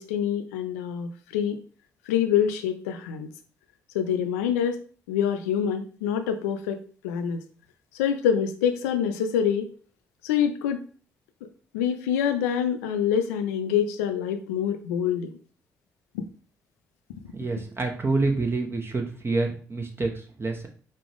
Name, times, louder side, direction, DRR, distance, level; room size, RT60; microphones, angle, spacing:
voice 1, 0.0-1.6 2.1-3.3 3.9-4.8 5.1-7.4 7.9-9.7 10.2-10.8 11.7-15.3 16.1-16.2, left 8 dB, 90° left, 8 dB, 0.4 m, -26 dB
voice 2, 17.3-20.7, right 3 dB, 30° right, 3 dB, 1.0 m, -27 dB
5.1 x 2.4 x 3.5 m, 0.42 s
hypercardioid pair, 45°, 8 cm